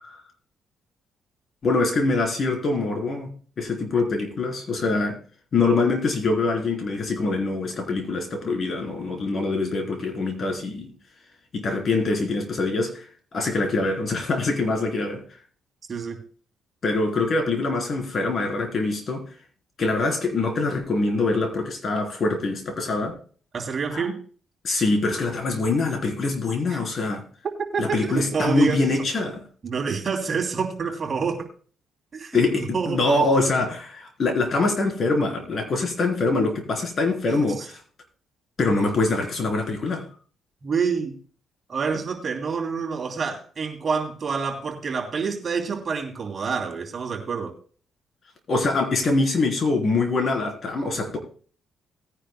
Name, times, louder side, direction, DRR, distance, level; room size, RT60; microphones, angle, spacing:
voice 1, 1.6-5.2 5.5-10.9 11.5-13.1 13.3-15.2 16.8-19.2 19.8-23.2 23.9-24.1 24.6-27.2 27.8-29.5 32.3-37.8 38.6-40.0 48.5-51.2, left 3 dB, 50° left, 3 dB, 3.6 m, -24 dB
voice 2, 15.9-16.2 23.5-24.2 26.7-26.8 27.7-28.8 29.6-31.5 32.1-33.0 37.6-37.7 40.6-41.2 41.7-47.5, right 5 dB, 40° right, 2 dB, 2.9 m, -27 dB
19.0 x 10.0 x 2.2 m, 0.43 s
cardioid pair, 90°, 0 cm